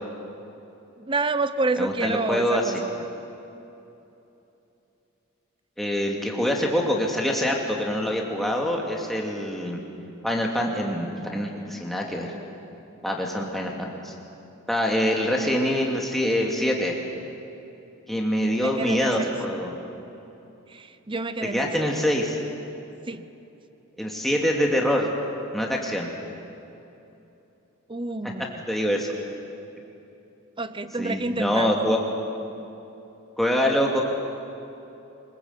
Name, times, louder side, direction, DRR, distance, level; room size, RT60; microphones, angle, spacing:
voice 1, 1.0-2.9 18.6-19.3 20.7-21.9 23.1-23.3 27.9-28.6 30.6-31.9, right 3 dB, 25° right, 13 dB, 0.7 m, -29 dB
voice 2, 1.8-2.6 5.8-9.8 10.2-12.3 13.0-14.1 14.7-17.0 18.1-19.7 21.4-22.4 24.0-25.1 25.5-26.1 28.7-29.1 31.0-32.0 33.4-34.0, equal, ahead, -1 dB, 2.5 m, -25 dB
24.5 x 21.0 x 8.2 m, 2.9 s
head